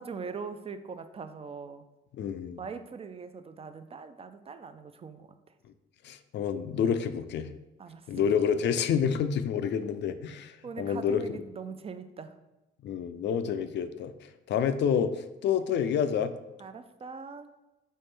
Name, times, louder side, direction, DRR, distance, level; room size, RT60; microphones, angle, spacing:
voice 1, 0.0-1.8 2.6-5.3 7.8-8.2 10.6-12.4 16.6-17.5, right 5 dB, 30° right, 9 dB, 0.4 m, -41 dB
voice 2, 2.1-2.6 6.0-7.5 8.1-11.2 12.8-16.3, left 7 dB, 65° left, 11 dB, 0.4 m, -28 dB
4.3 x 3.5 x 3.3 m, 1.0 s
cardioid pair, 90°, 20 cm